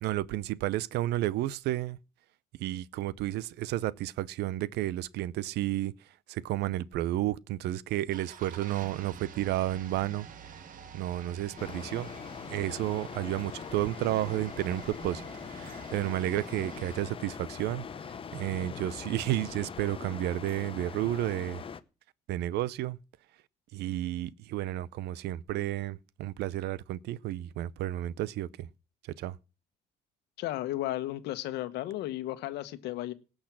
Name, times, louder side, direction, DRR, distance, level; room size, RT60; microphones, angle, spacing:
voice 1, 0.0-2.0 2.6-5.9 6.3-10.3 10.9-12.1 12.5-21.6 22.3-23.0 23.7-28.7 29.2-29.4, right 14 dB, 75° right, 0.6 m, -32 dB
sound 1, 8.1-17.0, right 7 dB, 55° right, 1.5 m, -48 dB
sound 2, 11.6-21.8, left 6 dB, 30° left, 0.8 m, -42 dB
voice 2, 30.4-33.1, left 15 dB, 80° left, 1.2 m, -34 dB
18.0 x 6.4 x 6.0 m
cardioid pair, 110°, 17 cm